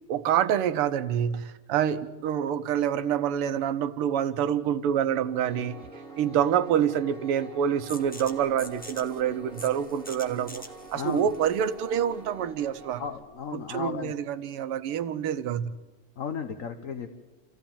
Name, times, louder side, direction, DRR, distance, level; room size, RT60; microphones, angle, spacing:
voice 1, 0.1-5.8 6.2-10.6 10.9-13.0 13.5-15.7, right 9 dB, 85° right, 12 dB, 1.8 m, -27 dB
Piano, 5.4-13.1, right 3 dB, 35° right, 2.9 m, -46 dB
sound 1, 7.9-13.4, equal, 5° left, 1.0 m, -46 dB
voice 2, 10.9-11.3 13.0-14.1 16.2-17.2, left 6 dB, 50° left, 7 dB, 1.1 m, -34 dB
28.0 x 15.0 x 7.3 m, 1.2 s
omnidirectional pair, 2.4 m